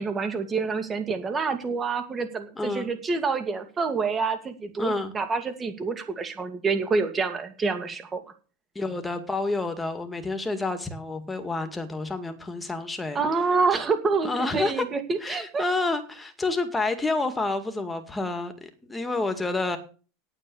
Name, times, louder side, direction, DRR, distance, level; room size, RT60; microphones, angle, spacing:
voice 1, 0.0-8.2 13.1-15.6, right 4 dB, 20° right, 8 dB, 2.3 m, -27 dB
voice 2, 2.6-2.9 4.8-5.1 8.7-13.2 14.2-14.8 15.2-19.8, left 3 dB, 10° left, 7 dB, 2.1 m, -29 dB
9.2 x 9.1 x 7.0 m, 0.38 s
supercardioid pair, 125°, 0 cm